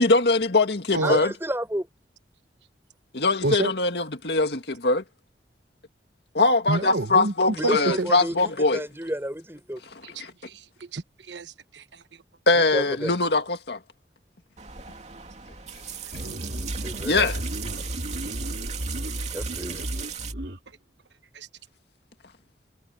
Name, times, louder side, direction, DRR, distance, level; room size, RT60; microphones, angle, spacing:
voice 1, 0.0-1.3 3.1-5.0 6.3-8.8 9.9-10.3 12.5-13.8 17.0-17.4, left 3 dB, 70° left, 2.0 m, -22 dB
voice 2, 1.0-1.9 7.6-9.8 12.7-13.1 16.2-17.3 19.3-19.9, right 1 dB, 15° right, 5.7 m, -31 dB
voice 3, 6.7-7.3 7.6-8.1 10.0-12.0 21.3-21.5, right 2 dB, 85° right, 1.2 m, -29 dB
sound 1, 14.6-20.3, right 8 dB, 40° right, 2.8 m, -38 dB
sound 2, 16.1-20.6, equal, 60° right, 2.8 m, -33 dB
head